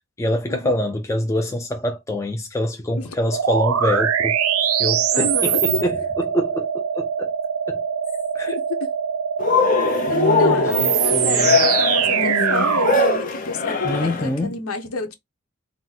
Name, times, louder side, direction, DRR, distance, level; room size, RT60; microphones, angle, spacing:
voice 1, 0.2-4.4 4.8-6.0 6.3-7.3 7.7-7.8 8.4-8.6 10.1-11.6 13.8-14.6, left 1 dB, 15° left, 0.4 m, -25 dB
sound 1, 3.3-13.2, right 8 dB, 85° right, 0.5 m, -22 dB
voice 2, 5.1-5.8 8.5-8.6 9.8-15.1, left 3 dB, 90° left, 0.9 m, -29 dB
Cheering, 9.4-14.3, left 4 dB, 40° left, 0.7 m, -21 dB
4.2 x 2.1 x 4.0 m
head